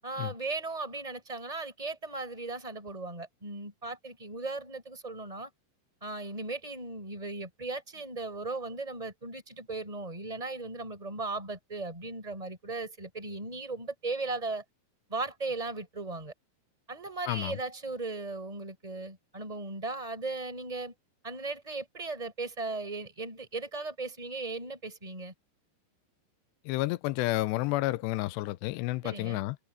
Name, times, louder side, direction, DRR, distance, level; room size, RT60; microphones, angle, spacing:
voice 1, 0.0-5.5 6.0-14.6 15.1-16.3 16.9-20.9 21.2-25.3 29.0-29.4, right 3 dB, 10° right, 6.8 m, -37 dB
voice 2, 17.3-17.6 26.7-29.6, left 18 dB, 85° left, 2.8 m, -30 dB
omnidirectional pair, 4.9 m